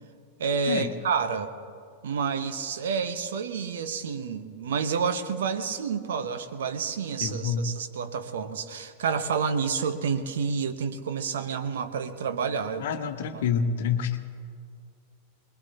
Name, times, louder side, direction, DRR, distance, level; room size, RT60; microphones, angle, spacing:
voice 1, 0.4-1.5 2.0-12.9 13.3-13.4, right 6 dB, 60° right, 9 dB, 1.0 m, -29 dB
voice 2, 7.2-7.6 12.8-14.2, left 7 dB, 55° left, 7 dB, 1.1 m, -27 dB
23.5 x 21.5 x 2.9 m, 2.2 s
figure-of-eight pair, 90°, 0 cm